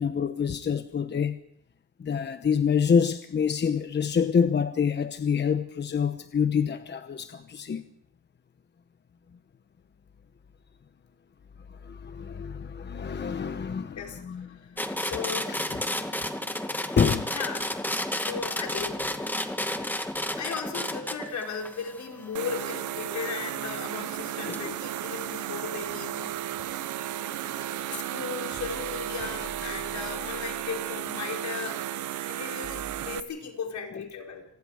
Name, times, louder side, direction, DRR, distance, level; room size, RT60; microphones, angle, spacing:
voice 1, 0.0-1.4 2.0-7.8 11.8-14.5 15.5-15.6 17.0-17.3 24.5-24.7, left 6 dB, 35° left, 1.1 m, -26 dB
sound 1, 14.8-23.3 24.5-24.6, left 1 dB, 5° left, 2.1 m, -32 dB
voice 2, 15.0-15.6 17.3-19.0 20.4-26.4 27.9-31.8 32.3-34.5, left 6 dB, 70° left, 5.2 m, -36 dB
sound 2, 22.3-33.2, right 12 dB, 75° right, 1.0 m, -34 dB
sound 3, 26.8-33.2, right 4 dB, 50° right, 7.3 m, -48 dB
27.5 x 19.5 x 5.0 m
cardioid pair, 90°, 30 cm